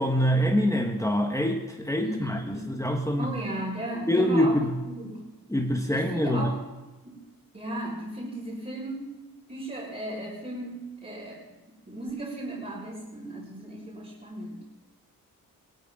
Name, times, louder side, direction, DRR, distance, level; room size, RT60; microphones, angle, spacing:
voice 1, 0.0-3.3 4.1-4.7 5.5-6.5, equal, 10° left, 2 dB, 1.5 m, -25 dB
voice 2, 2.0-2.7 3.2-4.6 4.8-5.2 5.9-6.6 7.0-7.3 7.5-9.1 9.5-14.6, right 1 dB, 25° right, -6 dB, 5.2 m, -36 dB
18.0 x 13.5 x 3.8 m, 1.1 s
cardioid pair, 60°, 36 cm